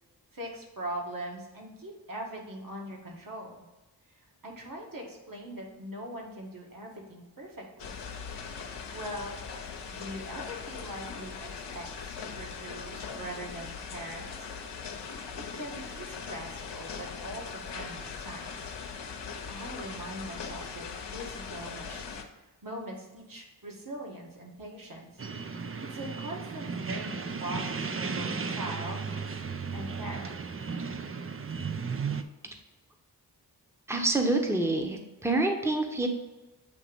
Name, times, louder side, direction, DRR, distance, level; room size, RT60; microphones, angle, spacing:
voice 1, 0.3-3.7 4.1-7.9 8.9-14.5 15.4-18.7 19.5-25.2 25.6-29.1 29.7-30.4, right 1 dB, 55° right, -1 dB, 1.8 m, -42 dB
sound 1, 7.8-22.2, left 5 dB, 90° left, 0.8 m, -40 dB
sound 2, 25.2-32.2, right 5 dB, 35° right, 0.5 m, -35 dB
voice 2, 33.9-36.1, right 2 dB, 5° right, 3 dB, 0.9 m, -27 dB
8.3 x 2.9 x 5.2 m, 1.1 s
cardioid pair, 55°, 40 cm